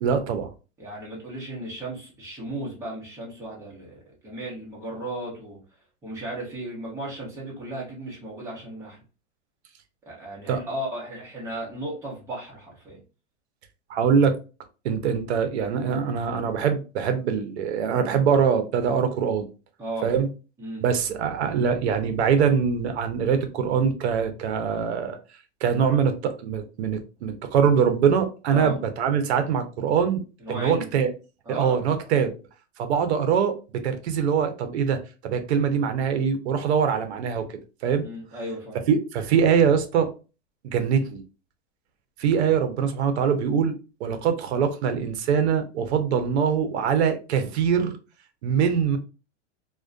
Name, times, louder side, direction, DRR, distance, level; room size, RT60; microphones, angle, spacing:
voice 1, 0.0-0.5 10.5-10.6 13.9-14.3 14.8-19.4 20.0-20.3 20.8-25.2 25.6-30.2 30.5-31.1 31.5-32.3 32.8-37.5 37.8-38.1 38.9-40.1 40.6-41.2 42.2-43.7 44.0-48.0 48.4-49.0, right 7 dB, 65° right, 8 dB, 0.6 m, -23 dB
voice 2, 0.8-5.6 6.0-9.0 10.1-13.0 19.8-20.1 20.6-20.9 28.5-28.8 30.4-30.9 31.5-31.8 38.0-38.8 44.0-44.2, right 1 dB, 10° right, -4 dB, 0.6 m, -35 dB
2.4 x 2.2 x 2.4 m, 0.32 s
supercardioid pair, 160°, 36 cm